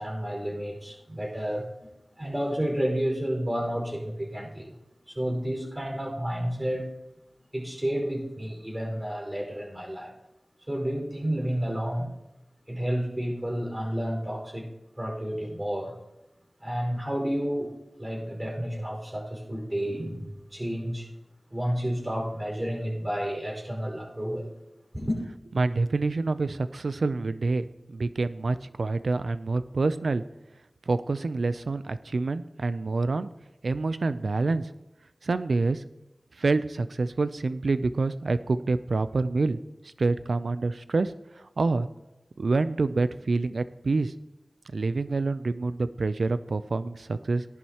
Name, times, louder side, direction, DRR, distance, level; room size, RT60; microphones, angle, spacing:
voice 1, 0.0-1.9 2.2-4.7 5.1-6.9 7.5-10.1 10.7-12.2 12.7-14.7 15.0-15.9 16.6-17.7 18.0-21.1 21.5-24.5 24.9-25.2, equal, 25° right, 0 dB, 5.1 m, -31 dB
voice 2, 25.6-30.2 30.9-33.3 33.6-34.7 35.2-35.8 36.4-39.6 40.0-41.9 42.4-44.1 44.7-47.5, right 3 dB, 90° right, 12 dB, 0.5 m, -27 dB
18.0 x 11.0 x 3.0 m, 0.95 s
wide cardioid pair, 40°, 0 cm